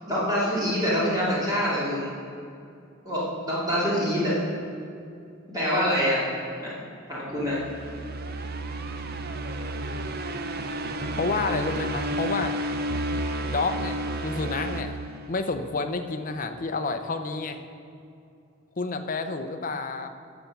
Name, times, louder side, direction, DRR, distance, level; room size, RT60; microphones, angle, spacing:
voice 1, 0.0-2.1 3.0-4.4 5.5-6.2 6.6-6.7 7.1-7.6, equal, 20° right, -8 dB, 2.5 m, -25 dB
sound 1, 7.4-15.7, right 1 dB, 50° right, 0.7 m, -32 dB
voice 2, 11.2-12.6 13.5-15.0 15.3-17.6 18.8-20.1, left 3 dB, 40° left, 7 dB, 0.6 m, -29 dB
12.5 x 7.1 x 5.8 m, 2.5 s
head